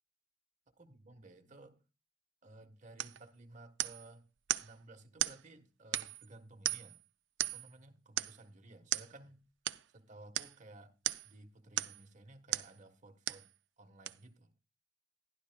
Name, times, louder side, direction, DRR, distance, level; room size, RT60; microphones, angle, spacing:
voice 1, 0.8-1.8 2.4-4.3 4.6-7.0 7.4-9.4 9.9-10.9 11.2-13.5 13.8-14.5, right 2 dB, 40° right, 1.2 m, -56 dB
sound 1, 3.0-3.2 3.8-4.1 4.5-4.7 5.2-5.4 5.9-6.3 6.6-7.0 7.4-7.7 8.2-8.4 8.9-9.1 9.7-9.8 10.3-10.5 11.0-11.3 11.8-12.0 12.5-12.7 13.3-13.5 14.1-14.2, right 13 dB, 70° right, 0.4 m, -36 dB
15.0 x 11.0 x 2.2 m
head